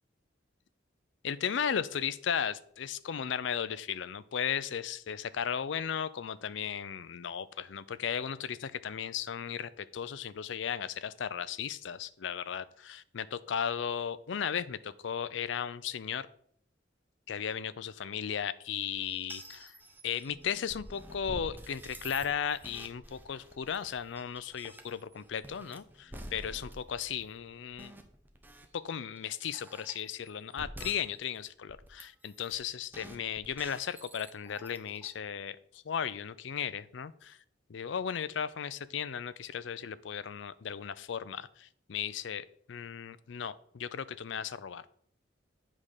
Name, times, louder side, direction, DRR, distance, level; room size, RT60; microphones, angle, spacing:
voice 1, 1.2-16.3 17.3-19.7 20.0-27.9 28.7-37.4 37.7-44.8, left 8 dB, 75° left, 15 dB, 0.4 m, -36 dB
sound 1, 19.0-28.7 29.2-31.4 31.7-32.6 32.9-35.1, right 1 dB, 10° right, 0.7 m, -48 dB
8.5 x 3.7 x 6.5 m, 0.64 s
head